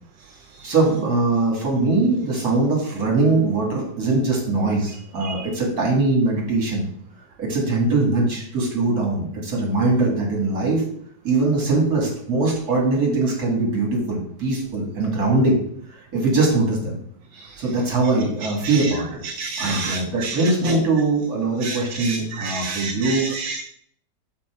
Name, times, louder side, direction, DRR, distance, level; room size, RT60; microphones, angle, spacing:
voice 1, 0.6-6.9 7.4-10.8 11.2-15.6 15.9-17.0 17.6-19.2 19.6-23.3, right 3 dB, 60° right, -2 dB, 2.8 m, -21 dB
voice 2, 19.2-20.3 21.6-23.6, right 4 dB, 80° right, 5 dB, 1.3 m, -30 dB
6.0 x 5.7 x 4.6 m, 0.63 s
omnidirectional pair, 1.8 m